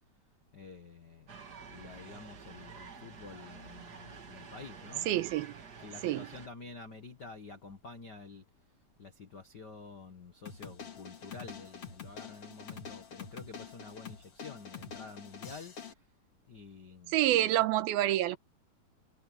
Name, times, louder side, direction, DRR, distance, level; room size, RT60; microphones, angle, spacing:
voice 1, 0.5-1.3 1.7-5.1 5.8-8.4 9.0-16.0 16.5-17.5, left 4 dB, 65° left, 1.0 m, -49 dB
sound 1, 1.3-6.5, right 5 dB, 40° right, 1.4 m, -49 dB
voice 2, 5.1-5.6 6.0-6.3 17.1-18.4, right 14 dB, 85° right, 2.8 m, -27 dB
sound 2, 10.5-15.9, left 6 dB, 45° left, 3.2 m, -46 dB
omnidirectional pair, 4.3 m